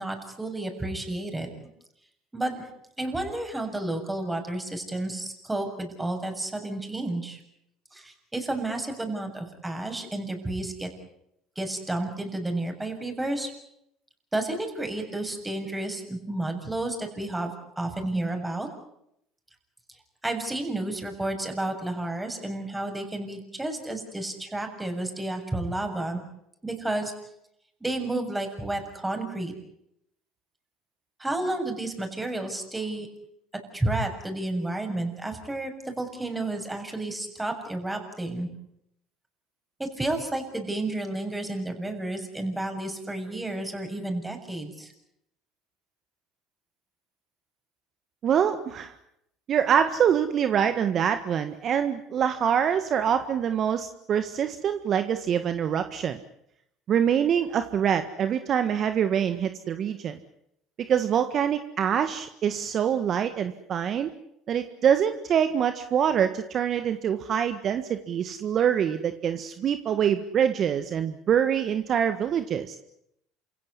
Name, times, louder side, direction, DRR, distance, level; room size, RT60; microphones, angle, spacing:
voice 1, 0.0-1.5 2.3-2.6 3.0-7.4 7.9-10.9 11.6-13.5 14.3-18.7 20.2-26.2 26.6-27.1 27.8-29.5 31.2-33.1 33.7-38.5 39.8-44.9, right 2 dB, 10° right, 5 dB, 7.3 m, -31 dB
voice 2, 48.2-48.9 49.5-56.2 56.9-60.2 60.9-64.1 64.5-72.8, right 8 dB, 50° right, 9 dB, 1.6 m, -25 dB
28.5 x 17.0 x 9.8 m, 0.78 s
supercardioid pair, 85°, 0 cm